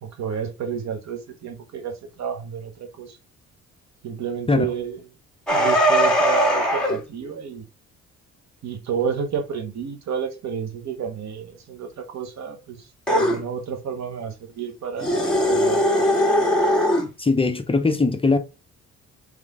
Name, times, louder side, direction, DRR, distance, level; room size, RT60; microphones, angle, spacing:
voice 1, 0.0-3.2 4.0-5.0 5.5-7.6 8.6-16.1, right 7 dB, 65° right, 1.1 m, -30 dB
sound 1, 5.5-7.0 13.1-13.4 15.0-17.1, equal, ahead, 1.8 m, -20 dB
voice 2, 17.2-18.4, left 3 dB, 20° left, 0.6 m, -20 dB
3.5 x 3.4 x 3.6 m
cardioid pair, 90°, 30 cm